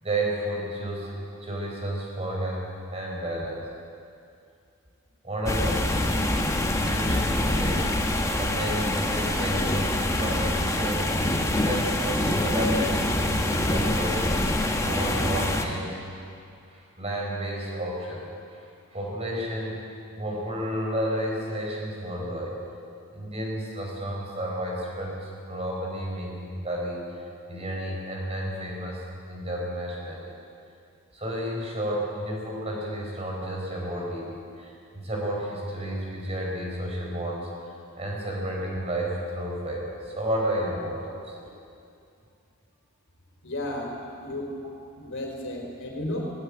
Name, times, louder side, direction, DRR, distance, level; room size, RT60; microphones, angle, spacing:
voice 1, 0.0-3.6 5.2-7.9 8.4-11.1 11.6-14.3 14.8-16.0 16.3-16.4 16.7-18.6 18.9-19.9 20.2-22.6 23.1-29.0 29.3-30.3 31.1-37.5 38.0-41.5, right 1 dB, 30° right, -2 dB, 4.7 m, -31 dB
sound 1, 5.5-15.7, left 1 dB, 15° left, 1.3 m, -25 dB
voice 2, 43.4-43.9 44.2-44.5 45.0-46.3, left 1 dB, 60° left, 0 dB, 4.0 m, -33 dB
18.0 x 17.5 x 8.7 m, 2.5 s
head